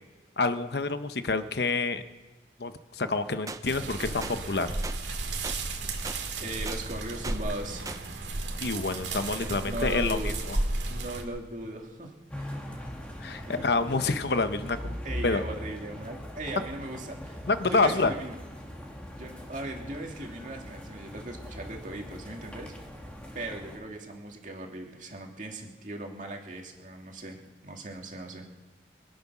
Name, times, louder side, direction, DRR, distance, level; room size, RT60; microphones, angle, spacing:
voice 1, 0.4-2.0 2.6-4.7 8.6-10.2 10.5-10.6 13.2-15.0 15.2-15.4 17.5-18.1, left 3 dB, 65° left, 10 dB, 0.9 m, -27 dB
sound 1, 3.5-3.6 4.2-4.4 4.8-5.0 5.4-5.6 6.0-6.2 6.7-6.8 7.2-7.4 7.9-8.0, right 3 dB, 20° right, 0.6 m, -38 dB
sound 2, 3.6-11.2, right 2 dB, 90° right, 2.1 m, -33 dB
voice 2, 6.4-7.8 9.5-10.4 10.9-12.6 13.3-14.0 15.0-17.4 17.7-18.4 19.2-22.8 23.3-28.5, right 1 dB, 45° right, 2 dB, 2.3 m, -38 dB
sound 3, 12.3-23.8, equal, 5° left, 2.0 m, -41 dB
25.0 x 9.5 x 6.1 m, 1.3 s
head